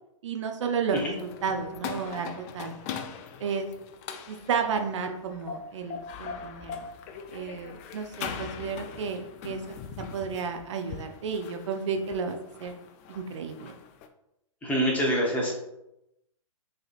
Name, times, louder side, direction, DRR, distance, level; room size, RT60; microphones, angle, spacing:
voice 1, 0.2-2.8 3.4-3.7 4.3-6.9 7.3-9.6 10.1-12.7 13.1-13.7, right 5 dB, 60° right, 5 dB, 0.6 m, -32 dB
sound 1, 0.9-14.1, left 6 dB, 25° left, 0.3 m, -41 dB
voice 2, 14.6-15.5, equal, 10° left, -3 dB, 0.9 m, -25 dB
6.1 x 2.8 x 2.4 m, 0.87 s
hypercardioid pair, 135°, 18 cm